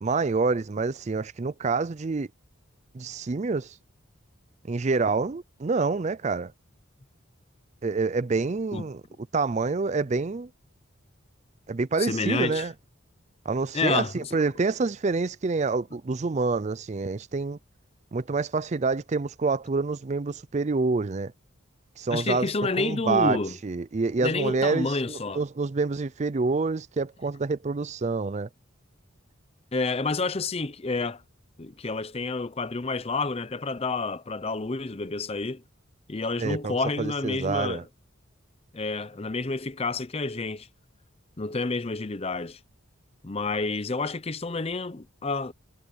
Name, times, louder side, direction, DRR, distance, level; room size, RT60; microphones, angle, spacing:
voice 1, 0.0-2.3 2.9-3.8 4.6-6.5 7.8-9.0 9.3-10.5 11.7-12.7 13.5-17.6 18.1-21.3 22.0-22.5 22.8-28.5 36.4-37.8, right 4 dB, 35° right, 0.4 m, -27 dB
voice 2, 12.0-12.7 13.7-14.4 22.1-23.6 24.2-25.4 29.7-31.2 31.6-35.6 36.1-37.9 38.7-40.7 41.4-42.6 43.2-45.5, left 3 dB, 30° left, 0.6 m, -29 dB
head